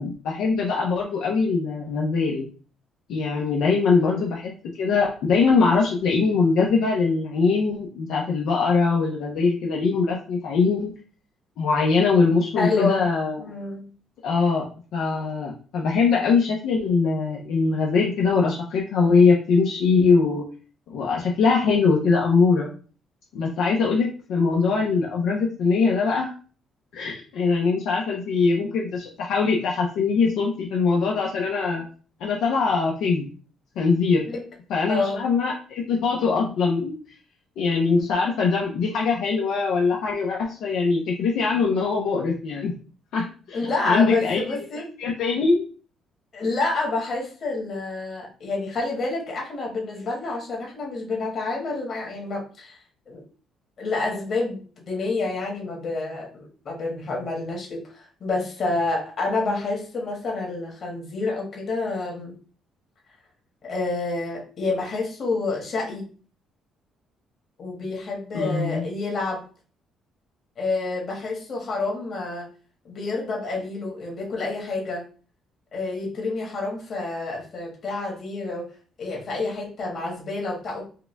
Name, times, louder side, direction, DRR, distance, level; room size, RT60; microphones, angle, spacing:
voice 1, 0.0-2.5 3.1-4.5 4.8-10.9 11.6-13.4 14.2-14.6 14.9-20.4 20.9-22.7 23.3-26.3 26.9-31.8 32.2-33.2 33.8-34.2 34.7-36.9 37.6-42.7 43.1-44.4 45.0-45.6 68.3-68.8, left 4 dB, 80° left, -2 dB, 0.7 m, -22 dB
voice 2, 3.8-4.3 12.6-13.1 13.4-13.9 34.3-34.5 34.9-35.2 43.5-44.8 46.3-52.8 53.1-53.2 53.8-62.3 63.6-66.0 67.6-69.5 70.6-72.5 72.8-75.1 75.7-78.7 79.0-80.9, left 3 dB, 50° left, -1 dB, 1.8 m, -28 dB
4.8 x 2.3 x 3.4 m, 0.39 s
cardioid pair, 110°, 0 cm